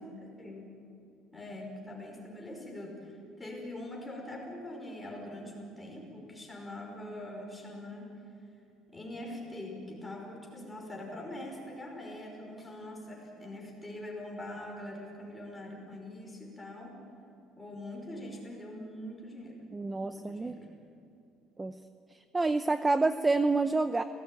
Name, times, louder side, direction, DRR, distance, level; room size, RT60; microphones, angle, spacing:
voice 1, 0.1-0.7 1.3-8.2 8.9-17.0 17.6-19.6 20.0-20.7, left 1 dB, 10° left, -1 dB, 5.3 m, -43 dB
voice 2, 19.7-20.6 21.6-21.7 22.3-24.0, right 3 dB, 15° right, 10 dB, 0.6 m, -28 dB
28.0 x 18.5 x 9.1 m, 2.6 s
cardioid pair, 165°, 0 cm